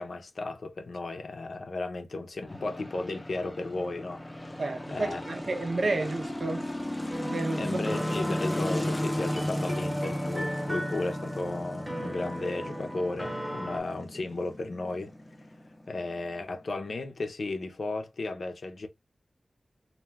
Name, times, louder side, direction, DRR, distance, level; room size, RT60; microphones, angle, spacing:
voice 1, 0.0-4.6 4.9-5.2 7.5-15.1 15.9-18.9, left 2 dB, 70° left, 0.6 m, -34 dB
sound 1, 2.5-16.7, left 1 dB, 15° left, 0.5 m, -35 dB
voice 2, 4.6-6.7 7.2-8.2, right 2 dB, 65° right, 0.5 m, -32 dB
sound 2, 7.1-13.8, equal, 15° right, 0.8 m, -37 dB
2.3 x 2.2 x 3.3 m
wide cardioid pair, 95°, 0 cm